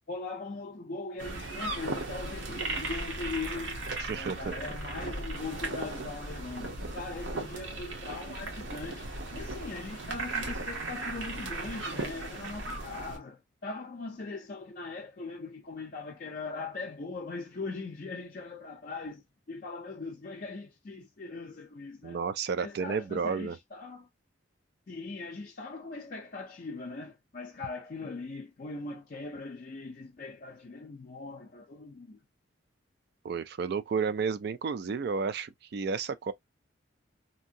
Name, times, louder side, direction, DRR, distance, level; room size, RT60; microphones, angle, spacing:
voice 1, 0.1-22.2 22.6-24.1 24.9-32.2, left 3 dB, 45° left, 0.4 m, -40 dB
sound 1, 1.2-13.2, right 2 dB, 75° right, 1.0 m, -37 dB
voice 2, 4.1-4.6 22.0-23.6 33.2-36.3, right 5 dB, 55° right, 0.3 m, -32 dB
2.8 x 2.6 x 2.6 m
head